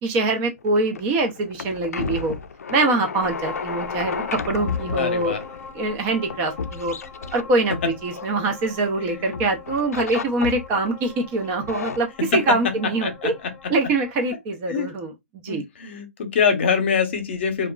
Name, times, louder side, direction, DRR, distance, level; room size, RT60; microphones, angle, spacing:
voice 1, 0.0-2.4 2.7-5.4 5.7-6.9 7.3-12.1 12.3-13.3 13.7-15.1 15.4-15.6, right 2 dB, 20° right, 0.4 m, -24 dB
sound 1, 0.6-9.0 9.3-10.9 11.4-12.0, left 5 dB, 85° left, 0.3 m, -32 dB
sound 2, 3.2-14.3, left 5 dB, 15° left, 0.7 m, -42 dB
voice 2, 4.9-5.4 9.0-9.3 12.3-12.6 13.0-13.5 14.7-14.9 15.5-17.7, left 6 dB, 50° left, 0.7 m, -24 dB
2.8 x 2.3 x 2.2 m
hypercardioid pair, 155°, 8 cm